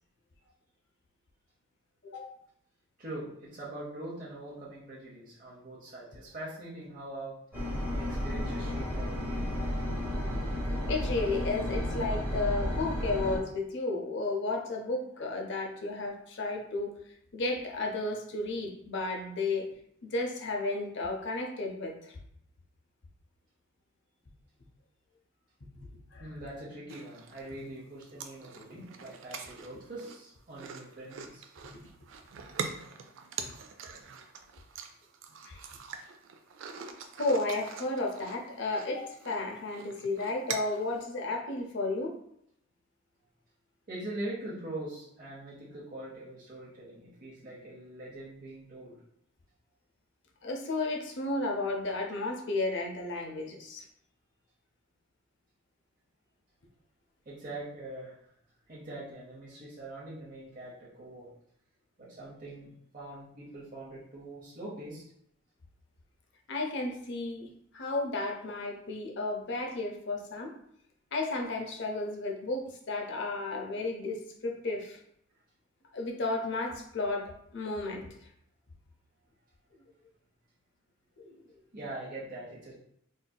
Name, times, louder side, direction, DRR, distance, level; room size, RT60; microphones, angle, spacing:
voice 1, 2.0-2.3 10.9-16.9 17.3-19.7 20.0-22.2 25.8-25.9 26.1-26.2 32.7-32.8 35.5-35.6 37.2-42.2 50.4-53.9 66.5-70.5 71.1-75.0 75.9-78.1 81.2-81.3, left 2 dB, 55° left, 2 dB, 0.5 m, -33 dB
voice 2, 3.0-7.4 7.9-9.5 26.2-31.5 43.9-49.0 57.3-58.2 58.7-61.3 62.0-65.0 81.7-82.7, right 1 dB, 40° right, -7 dB, 0.7 m, -43 dB
sound 1, 7.5-13.4, left 1 dB, 10° right, 1.0 m, -32 dB
sound 2, 26.9-27.6 28.0-41.0, right 6 dB, 60° right, 0.3 m, -43 dB
3.8 x 2.7 x 2.2 m, 0.70 s
head